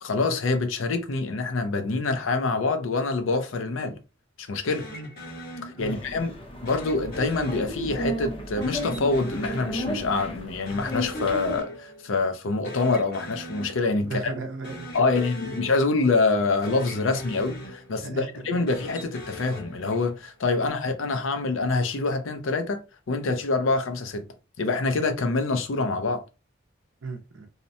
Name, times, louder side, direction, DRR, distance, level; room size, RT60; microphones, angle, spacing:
voice 1, 0.0-4.0 4.4-4.8 5.6-6.3 6.6-14.3 14.9-22.8 23.1-24.2 24.6-26.2, left 3 dB, 75° left, 0.5 m, -26 dB
sound 1, 4.7-6.2 6.6-8.2 8.6-10.4 10.6-12.2 12.5-14.2 14.6-16.4 16.6-18.2 18.6-20.3, left 1 dB, 50° left, 1.0 m, -41 dB
sound 2, 5.8-11.6, equal, 30° left, 0.6 m, -33 dB
voice 2, 14.0-15.6 18.0-18.7 20.5-20.6 27.0-27.5, right 3 dB, 75° right, 0.6 m, -36 dB
2.7 x 2.1 x 2.6 m
head